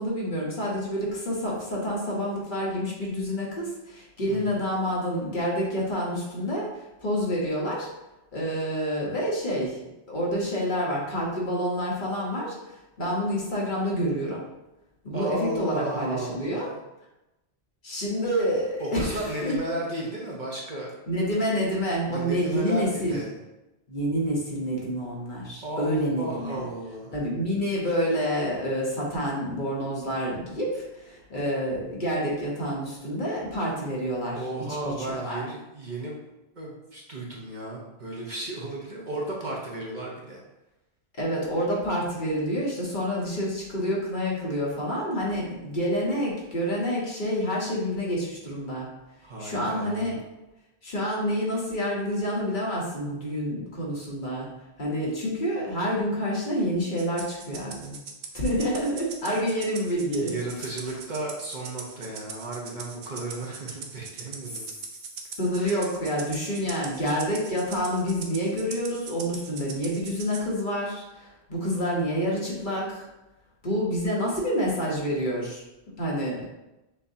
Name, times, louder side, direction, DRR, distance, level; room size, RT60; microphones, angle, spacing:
voice 1, 0.0-7.9 8.3-9.8 10.1-14.4 15.0-16.7 17.8-19.5 21.1-23.2 23.9-26.6 27.1-34.4 34.8-35.4 41.2-48.9 49.4-50.2 50.8-54.5 54.8-58.0 58.3-60.3 65.4-73.1 73.6-75.6 76.0-76.5, equal, 50° left, -4 dB, 1.2 m, -28 dB
voice 2, 4.3-4.6 15.1-16.8 18.8-21.0 22.1-23.4 25.6-27.2 34.3-36.2 36.6-40.4 49.2-50.1 60.2-64.6 65.6-65.8, right 1 dB, 45° right, -3 dB, 1.0 m, -34 dB
Rattle (instrument), 57.0-70.5, right 5 dB, 75° right, 0.8 m, -41 dB
6.7 x 2.7 x 2.7 m, 0.97 s
omnidirectional pair, 1.1 m